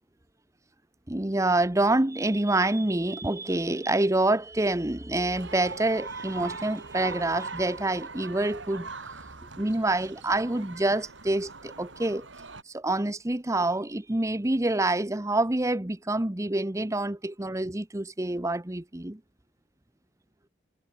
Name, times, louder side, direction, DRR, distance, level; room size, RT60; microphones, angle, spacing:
voice 1, 1.1-8.9 9.6-12.3 12.7-19.2, right 2 dB, 15° right, 0.9 m, -27 dB
sound 1, 5.3-12.6, right 4 dB, 85° right, 5.0 m, -41 dB
head